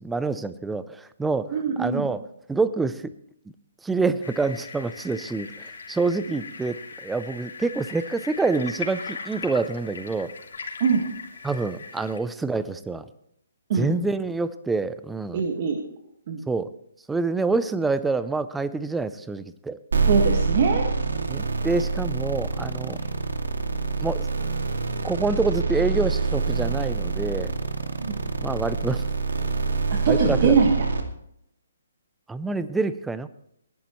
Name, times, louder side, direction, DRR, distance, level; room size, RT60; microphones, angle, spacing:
voice 1, 0.0-1.5 1.8-2.2 2.5-3.1 3.8-10.3 11.4-13.0 13.8-15.4 16.5-16.7 17.1-19.8 21.3-23.0 24.0-24.3 25.0-27.5 28.3-29.0 30.1-30.6 32.3-33.3, right 3 dB, 5° right, 14 dB, 0.5 m, -26 dB
voice 2, 1.5-2.1 10.8-11.0 13.7-13.9 15.3-15.8 16.3-16.4 20.1-20.9 28.0-28.2 29.9-30.8, right 5 dB, 35° right, 2 dB, 1.6 m, -22 dB
sound 1, 4.2-12.2, left 4 dB, 65° left, 3.0 m, -39 dB
sound 2, 19.9-31.0, right 4 dB, 80° right, 2.4 m, -26 dB
19.5 x 11.5 x 3.1 m, 0.74 s
hypercardioid pair, 165°, 0 cm